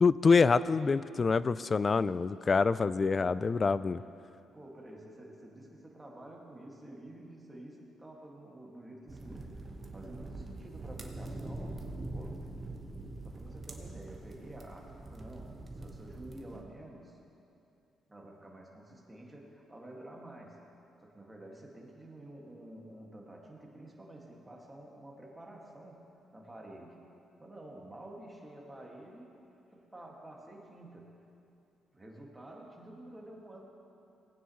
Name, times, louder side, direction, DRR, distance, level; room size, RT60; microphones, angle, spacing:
voice 1, 0.0-4.0, left 4 dB, 35° left, 16 dB, 0.3 m, -26 dB
voice 2, 3.1-3.7 4.5-11.8 12.1-12.4 13.2-17.2 18.1-20.6 21.0-27.0 27.4-29.4 29.7-31.2 31.9-33.7, right 1 dB, 15° right, -2 dB, 2.0 m, -50 dB
sound 1, 9.1-16.6, right 2 dB, 30° right, 1.2 m, -44 dB
18.5 x 9.5 x 3.2 m, 2.7 s
cardioid pair, 90°, 0 cm